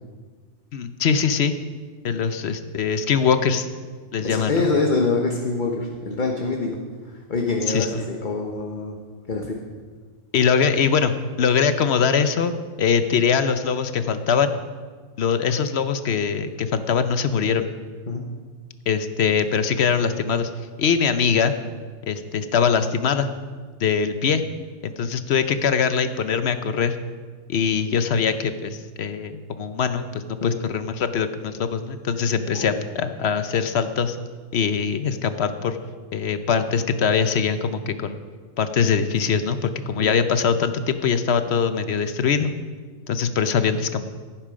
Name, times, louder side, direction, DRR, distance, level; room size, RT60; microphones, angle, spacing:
voice 1, 0.7-1.5 2.0-3.7 4.1-4.7 7.7-7.9 10.3-12.5 12.8-14.5 15.2-17.7 18.9-20.5 20.8-21.5 22.1-23.3 23.8-24.4 24.8-27.0 27.5-34.2 34.5-35.8 36.1-38.2 38.6-42.5 43.1-44.1, left 6 dB, 60° left, 10 dB, 1.0 m, -22 dB
voice 2, 4.2-6.8 7.0-9.0 9.3-9.6 18.1-18.2 30.4-30.5 32.5-32.8 40.0-40.1, left 3 dB, 40° left, 2 dB, 1.1 m, -25 dB
16.0 x 8.9 x 5.1 m, 1.5 s
omnidirectional pair, 1.3 m